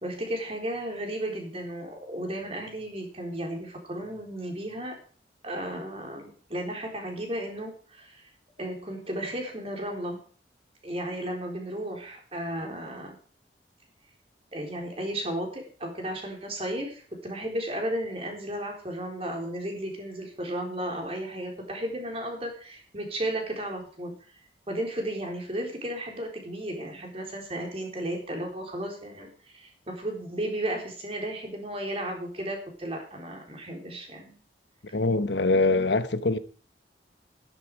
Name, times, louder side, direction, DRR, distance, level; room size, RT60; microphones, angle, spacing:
voice 1, 0.0-4.9 5.4-8.2 8.6-10.2 10.8-13.2 14.5-24.1 24.7-29.3 29.5-34.3, right 1 dB, 35° right, 4.1 m, -34 dB
voice 2, 34.9-36.4, left 3 dB, 80° left, 1.0 m, -23 dB
12.5 x 11.5 x 4.8 m
head